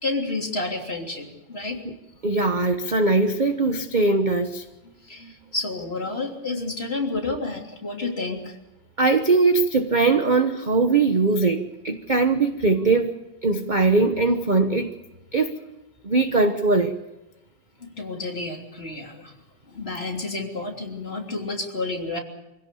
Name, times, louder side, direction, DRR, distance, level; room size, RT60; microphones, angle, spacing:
voice 1, 0.0-1.8 5.0-8.6 17.8-19.4 19.7-22.2, left 3 dB, 30° left, 3.5 m, -30 dB
voice 2, 2.2-4.6 9.0-13.2 13.4-15.0 15.3-15.6 16.0-16.9, right 3 dB, 30° right, 0.9 m, -21 dB
25.5 x 16.5 x 8.5 m
omnidirectional pair, 2.2 m